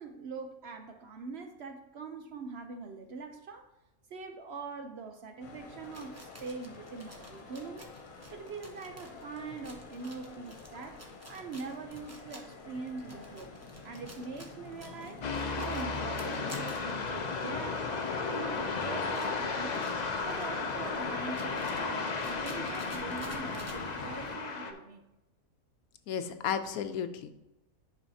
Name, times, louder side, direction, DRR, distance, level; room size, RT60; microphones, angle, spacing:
voice 1, 0.0-3.7 4.1-7.9 8.3-13.5 13.8-17.9 18.1-19.9 20.2-25.0, right 4 dB, 60° right, 6 dB, 0.7 m, -43 dB
sound 1, 5.4-24.4, left 3 dB, 70° left, 1.4 m, -47 dB
sound 2, 5.8-17.6 18.1-18.2 18.4-23.8, right 1 dB, 15° right, 0.8 m, -53 dB
sound 3, 15.2-24.7, left 4 dB, 45° left, 0.6 m, -34 dB
voice 2, 26.1-27.3, left 8 dB, 85° left, 9 dB, 1.1 m, -33 dB
10.0 x 5.5 x 2.7 m, 0.95 s
omnidirectional pair, 1.5 m